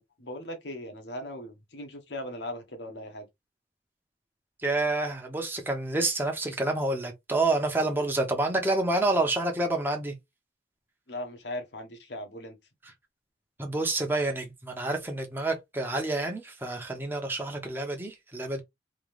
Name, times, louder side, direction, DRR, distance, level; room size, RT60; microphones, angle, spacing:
voice 1, 0.0-3.3 11.1-12.6, left 1 dB, 90° left, 1.3 m, -39 dB
voice 2, 4.6-10.1 13.6-18.6, right 2 dB, 10° right, 0.9 m, -28 dB
3.8 x 2.9 x 3.3 m
head